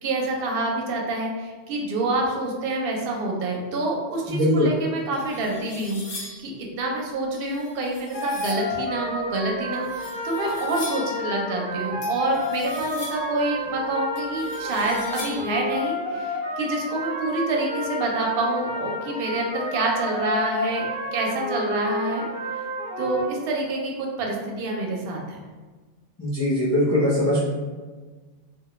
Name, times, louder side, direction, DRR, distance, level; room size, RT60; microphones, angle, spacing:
voice 1, 0.0-20.9 21.1-22.3 23.0-25.4, right 2 dB, 60° right, 0 dB, 0.6 m, -27 dB
voice 2, 4.3-4.7 26.2-27.5, left 1 dB, 25° left, -8 dB, 0.3 m, -21 dB
sound 1, 5.1-6.5 7.3-8.7 9.7-11.2 12.0-13.4 14.1-15.6, left 2 dB, 55° left, 0.7 m, -41 dB
sound 2, 8.1-23.2, left 1 dB, 10° left, 0.9 m, -31 dB
2.1 x 2.1 x 3.0 m, 1.4 s
omnidirectional pair, 1.2 m